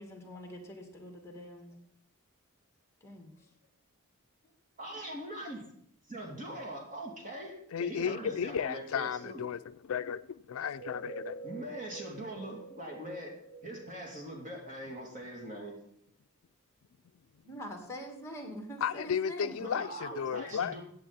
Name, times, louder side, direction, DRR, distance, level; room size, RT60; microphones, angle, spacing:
voice 1, 0.0-1.7 3.0-3.5 17.4-19.9, equal, 15° left, 2.1 m, -44 dB
voice 2, 4.8-5.7 6.1-9.4 11.4-13.4 13.6-15.8 19.6-20.8, right 1 dB, 35° right, 2.9 m, -42 dB
voice 3, 7.7-11.4 18.8-20.7, left 7 dB, 65° left, 0.4 m, -34 dB
sound 1, 10.6-15.2, right 4 dB, 10° right, 2.9 m, -47 dB
15.5 x 8.4 x 4.2 m
head